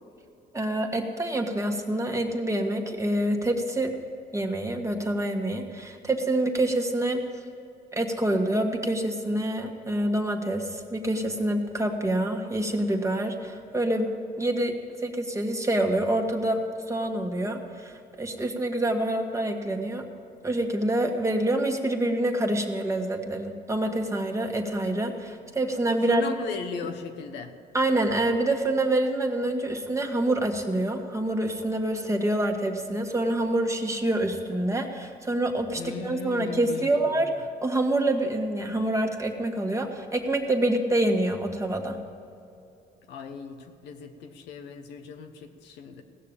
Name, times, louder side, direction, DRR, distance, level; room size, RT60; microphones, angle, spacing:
voice 1, 0.5-3.9 4.3-7.2 7.9-14.1 14.4-14.7 15.0-16.6 16.9-20.1 20.4-26.2 27.7-42.0, right 1 dB, 15° right, 3 dB, 1.6 m, -26 dB
voice 2, 26.0-27.5 35.7-37.1 43.1-46.0, left 5 dB, 90° left, 5 dB, 1.1 m, -37 dB
16.5 x 6.7 x 8.7 m, 2.7 s
cardioid pair, 80°, 17 cm